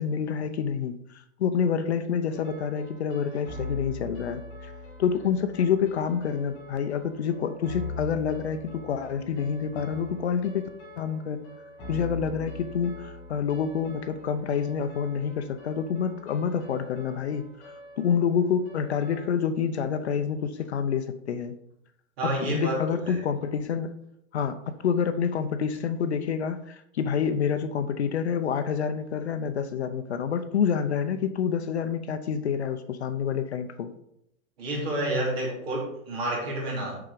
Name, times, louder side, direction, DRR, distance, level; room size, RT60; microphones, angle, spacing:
voice 1, 0.0-4.7 5.0-10.7 11.0-11.4 11.9-21.6 22.4-23.9 24.3-33.9 36.8-37.0, left 7 dB, 55° left, 10 dB, 0.6 m, -28 dB
sound 1, 2.3-19.3, left 2 dB, 15° left, 1.0 m, -42 dB
voice 2, 22.2-23.2 34.6-37.0, right 1 dB, 45° right, -3 dB, 3.5 m, -29 dB
7.0 x 5.8 x 5.0 m, 0.77 s
hypercardioid pair, 180°, 41 cm